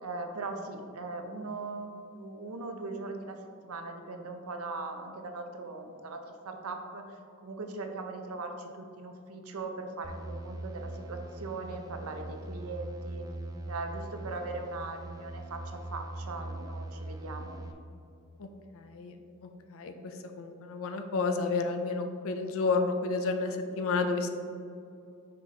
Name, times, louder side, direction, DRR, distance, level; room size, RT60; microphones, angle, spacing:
voice 1, 0.0-3.4 3.6-13.3 13.7-17.6, right 3 dB, 75° right, 5 dB, 0.6 m, -40 dB
sound 1, 10.0-17.7, right 2 dB, 15° right, 0.4 m, -41 dB
voice 2, 18.7-19.1 19.4-24.3, left 4 dB, 65° left, 6 dB, 0.5 m, -31 dB
5.8 x 5.0 x 3.2 m, 2.5 s
head